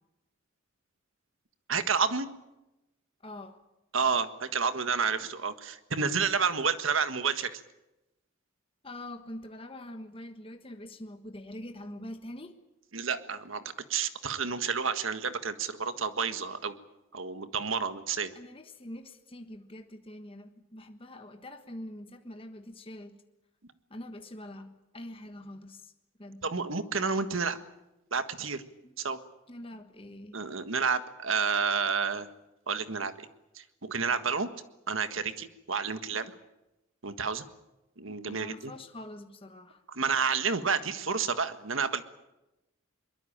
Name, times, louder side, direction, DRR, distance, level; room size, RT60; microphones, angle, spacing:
voice 1, 1.7-2.3 3.9-7.6 12.9-13.6 13.9-16.8 17.1-18.3 26.4-27.6 28.1-28.6 29.0-29.2 30.3-32.3 32.7-33.3 33.6-34.5 34.9-36.3 37.0-37.4 38.0-38.7 39.9-42.1, right 5 dB, 75° right, 10 dB, 1.6 m, -30 dB
voice 2, 3.2-3.6 8.8-12.6 18.3-23.2 23.9-25.9 26.2-26.4 28.8-29.0 29.5-30.4 38.2-39.8 40.8-40.9, left 1 dB, 25° left, 6 dB, 1.4 m, -44 dB
22.5 x 21.5 x 8.8 m, 0.97 s
head